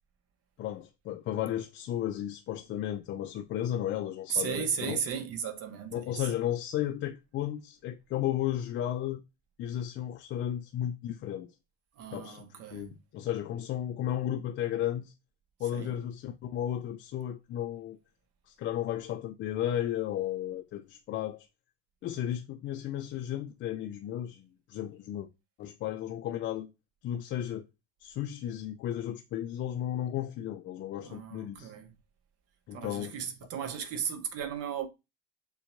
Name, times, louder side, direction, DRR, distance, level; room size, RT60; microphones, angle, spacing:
voice 1, 0.6-5.0 5.9-9.2 9.6-11.5 12.1-12.4 12.7-15.1 15.6-18.0 18.5-21.5 22.0-25.3 25.6-26.7 27.0-27.6 28.0-31.7 32.7-33.3, left 11 dB, 35° left, 0.4 m, -34 dB
voice 2, 4.3-6.0 12.0-13.0 15.7-15.9 31.0-31.9 32.7-34.9, right 7 dB, 45° right, 0.9 m, -35 dB
6.7 x 2.3 x 2.6 m
figure-of-eight pair, 65°, 33 cm